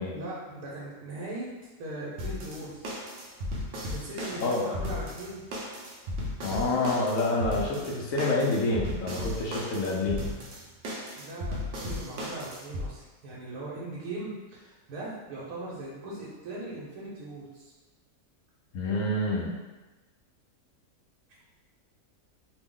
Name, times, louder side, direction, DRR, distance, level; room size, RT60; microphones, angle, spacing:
voice 1, 0.1-1.5 1.8-2.8 3.9-5.4 11.2-17.7, right 2 dB, 85° right, -6 dB, 1.2 m, -39 dB
sound 1, 2.2-12.9, left 1 dB, 65° right, 0.6 m, -36 dB
voice 2, 6.4-10.3 18.7-19.5, left 2 dB, 65° left, -3 dB, 0.9 m, -27 dB
3.0 x 2.0 x 3.6 m, 1.2 s
omnidirectional pair, 1.6 m